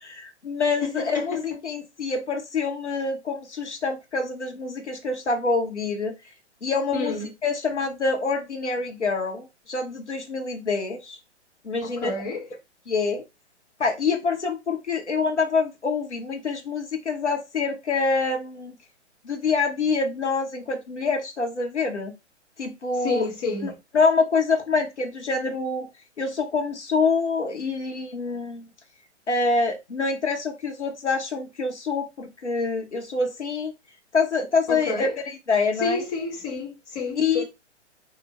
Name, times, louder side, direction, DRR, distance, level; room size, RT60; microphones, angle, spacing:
voice 1, 0.0-6.1 6.6-7.1 7.4-11.2 11.6-12.1 12.9-13.2 13.8-18.7 19.2-22.1 22.6-23.3 23.6-25.9 26.2-28.6 29.3-33.7 34.1-35.1 35.5-36.0 37.2-37.4, left 4 dB, 75° left, 1.2 m, -26 dB
voice 2, 0.8-1.4 6.9-7.3 11.8-12.5 23.0-23.8 34.7-35.2 35.8-37.4, left 4 dB, 35° left, 1.5 m, -29 dB
4.7 x 2.5 x 4.2 m
figure-of-eight pair, 120°, 35 cm